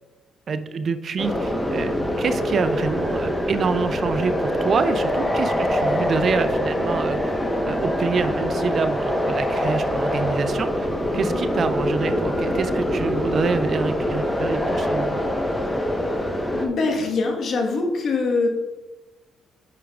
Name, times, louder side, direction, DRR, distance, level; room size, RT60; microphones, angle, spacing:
voice 1, 0.5-1.9 2.2-15.5, right 5 dB, 50° right, 11 dB, 0.4 m, -27 dB
sound 1, 1.2-16.7, equal, 10° left, 1.1 m, -24 dB
voice 2, 16.5-18.5, left 3 dB, 60° left, 2 dB, 1.4 m, -23 dB
9.1 x 5.9 x 2.4 m, 1.1 s
cardioid pair, 90°, 0 cm